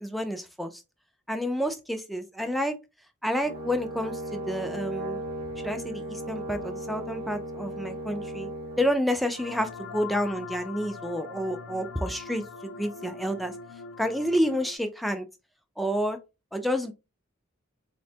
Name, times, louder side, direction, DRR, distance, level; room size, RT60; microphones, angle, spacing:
voice 1, 0.0-0.8 1.3-2.7 3.2-5.2 5.6-8.5 8.8-13.5 14.0-15.2 15.8-16.2 16.5-16.9, equal, ahead, 0.3 m, -29 dB
Brass instrument, 3.4-8.9, right 1 dB, 45° right, 0.6 m, -36 dB
sound 1, 9.4-14.8, left 4 dB, 70° left, 0.4 m, -42 dB
4.0 x 2.1 x 2.7 m
head